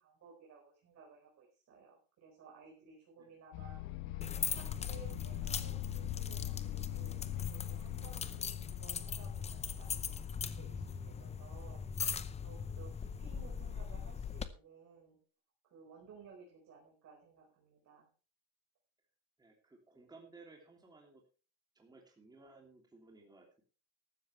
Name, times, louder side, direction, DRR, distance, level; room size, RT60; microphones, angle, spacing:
voice 1, 0.0-3.8 4.3-11.8 12.4-15.2 15.6-18.1, right 5 dB, 35° right, -1 dB, 5.0 m, -57 dB
sound 1, 3.5-11.4, left 15 dB, 85° left, 1.3 m, -43 dB
sound 2, 4.2-14.5, left 6 dB, 15° left, 0.6 m, -40 dB
voice 2, 19.4-21.2 21.7-23.6, right 3 dB, 10° right, 1 dB, 3.0 m, -58 dB
14.5 x 13.0 x 3.3 m, 0.36 s
cardioid pair, 165°, 46 cm